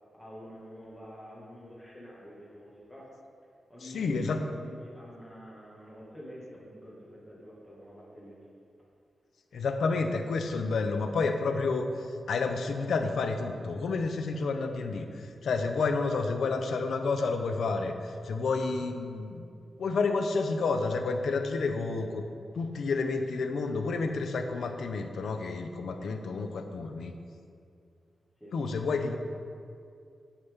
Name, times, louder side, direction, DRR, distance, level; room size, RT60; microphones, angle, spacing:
voice 1, 0.1-3.1 3.7-8.4 22.0-22.2 28.4-28.5 28.9-29.0, equal, 10° left, -6 dB, 1.7 m, -47 dB
voice 2, 3.8-4.4 9.5-19.5 19.8-22.2 22.5-27.1 28.5-29.2, left 4 dB, 75° left, 6 dB, 0.6 m, -30 dB
9.8 x 5.7 x 3.6 m, 2.4 s
wide cardioid pair, 165°, 0 cm